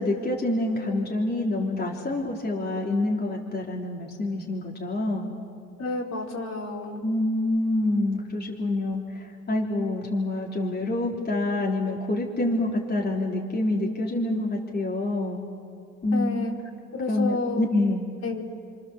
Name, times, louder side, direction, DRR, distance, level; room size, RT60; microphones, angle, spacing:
voice 1, 0.0-5.3 7.0-15.4 16.0-16.5 17.1-18.1, left 2 dB, 35° left, -2 dB, 3.5 m, -27 dB
voice 2, 5.8-7.0 16.1-16.5 16.9-17.6 18.2-18.5, left 2 dB, 60° left, -2 dB, 4.4 m, -30 dB
29.0 x 25.5 x 7.2 m, 2.4 s
cardioid pair, 90°, 30 cm